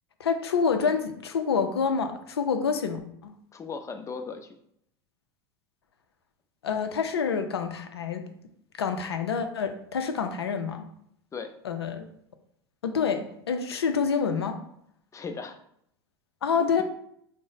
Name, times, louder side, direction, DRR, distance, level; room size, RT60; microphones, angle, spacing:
voice 1, 0.2-3.3 6.6-8.3 8.8-10.9 11.6-12.1 12.8-14.6 16.4-16.8, left 6 dB, 90° left, 7 dB, 0.5 m, -27 dB
voice 2, 3.5-4.5 11.3-11.5 15.1-15.6, left 5 dB, 25° left, 7 dB, 0.5 m, -37 dB
3.8 x 2.1 x 3.9 m, 0.72 s
hypercardioid pair, 85°, 13 cm